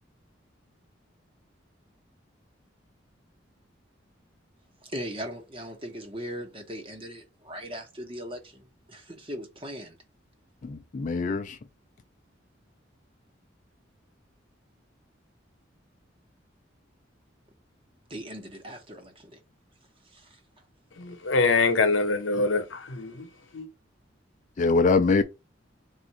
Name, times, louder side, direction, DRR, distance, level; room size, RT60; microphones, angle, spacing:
voice 1, 4.8-10.0 18.1-19.4 20.1-20.4, equal, 30° right, 1.0 m, -39 dB
voice 2, 10.6-11.6 24.6-25.2, left 4 dB, 40° left, 0.4 m, -23 dB
voice 3, 21.0-23.7, left 3 dB, 85° left, 0.8 m, -25 dB
3.6 x 2.5 x 4.2 m
head